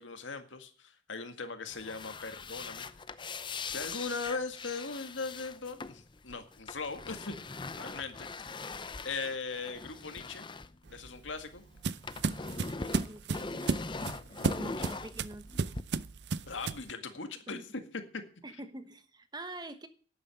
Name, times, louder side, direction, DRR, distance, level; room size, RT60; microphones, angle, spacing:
voice 1, 0.0-2.9 3.7-7.4 7.8-10.5 10.9-11.6 14.3-15.0 16.5-18.2, left 4 dB, 85° left, 8 dB, 1.9 m, -39 dB
sound 1, 1.7-11.5 11.8-15.8, left 4 dB, 25° left, 0.6 m, -41 dB
sound 2, 10.9-16.9, right 4 dB, 60° right, 0.5 m, -34 dB
voice 2, 13.0-13.9 14.6-15.5 17.5-17.6 18.4-19.9, right 1 dB, 20° right, 10 dB, 1.1 m, -45 dB
12.0 x 9.0 x 7.8 m, 0.42 s
head